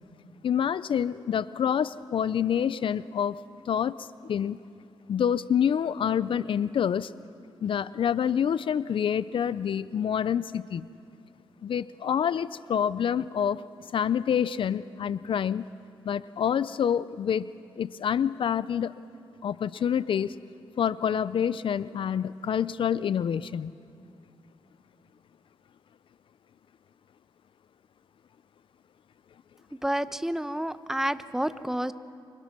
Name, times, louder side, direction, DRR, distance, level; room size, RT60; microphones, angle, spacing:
voice 1, 0.4-3.4 3.7-4.6 5.1-7.1 7.6-10.9 11.6-13.6 13.9-15.6 16.1-17.5 17.8-18.9 19.4-20.4 20.8-23.7, left 8 dB, 65° left, 17 dB, 0.5 m, -27 dB
voice 2, 29.8-31.9, right 1 dB, 5° right, 12 dB, 1.0 m, -29 dB
29.0 x 25.5 x 6.1 m, 2.4 s
cardioid pair, 65°, 9 cm